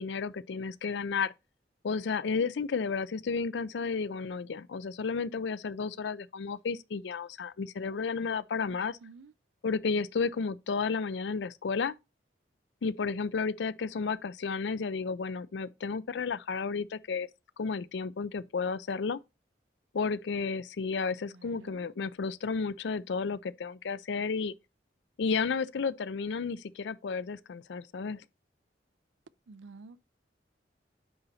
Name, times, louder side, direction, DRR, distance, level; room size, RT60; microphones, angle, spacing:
voice 1, 0.0-1.3 1.8-9.0 9.6-12.0 12.8-17.3 17.6-19.2 19.9-24.5 25.2-28.2, left 5 dB, 75° left, 0.4 m, -32 dB
voice 2, 8.7-9.3 21.3-21.9 29.5-30.0, right 4 dB, 90° right, 0.5 m, -51 dB
9.5 x 4.0 x 4.1 m
head